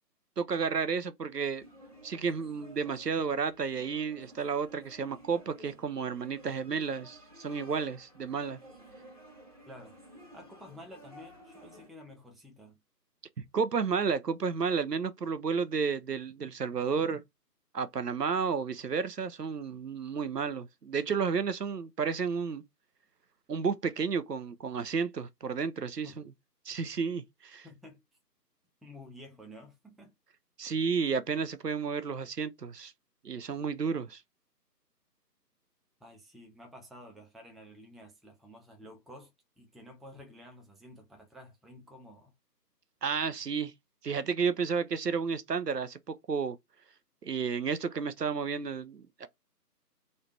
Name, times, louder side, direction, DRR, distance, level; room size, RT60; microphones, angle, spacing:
voice 1, 0.4-1.6 2.0-8.6 13.5-17.2 17.7-22.6 23.5-26.2 26.7-27.7 30.6-32.9 33.2-34.2 43.0-43.7 44.0-46.6 47.2-49.3, right 5 dB, 70° right, 0.7 m, -32 dB
sound 1, 1.6-11.9, right 1 dB, 20° right, 1.1 m, -54 dB
voice 2, 9.7-10.0 10.3-12.8 26.0-26.2 27.6-28.0 28.8-30.1 36.0-39.3 39.6-42.3, left 1 dB, ahead, 0.5 m, -51 dB
3.2 x 2.7 x 3.0 m
figure-of-eight pair, 155°, 50 cm